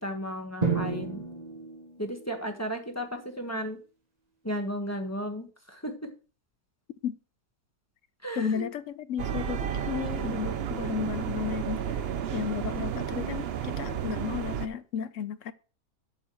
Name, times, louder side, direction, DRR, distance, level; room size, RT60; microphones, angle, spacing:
voice 1, 0.0-1.2 2.0-3.8 4.4-5.9 8.2-8.7, equal, 10° left, 1.2 m, -34 dB
Drum, 0.6-2.5, right 4 dB, 25° right, 1.2 m, -32 dB
voice 2, 8.4-15.5, left 7 dB, 65° left, 0.9 m, -33 dB
sound 1, 9.2-14.7, right 8 dB, 70° right, 0.5 m, -32 dB
12.5 x 6.8 x 3.0 m
omnidirectional pair, 1.7 m